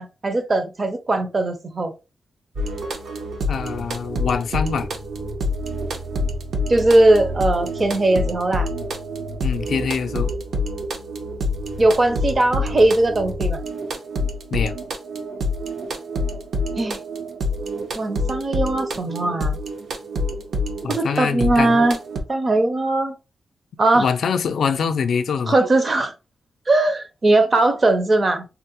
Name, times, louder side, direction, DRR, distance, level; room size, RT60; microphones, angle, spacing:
voice 1, 0.0-1.9 6.7-8.7 11.8-13.6 16.8-17.0 18.0-19.6 20.9-22.0 22.3-23.1 23.8-24.1 25.5-26.1 26.7-28.5, right 2 dB, 35° right, 0.5 m, -19 dB
Classic Edm, 2.6-22.2, left 1 dB, 70° right, 0.6 m, -27 dB
voice 2, 3.5-4.9 9.4-10.3 14.5-14.7 20.8-21.9 23.9-25.6, left 6 dB, 80° left, 0.3 m, -24 dB
3.6 x 2.0 x 2.9 m
wide cardioid pair, 140°, 0 cm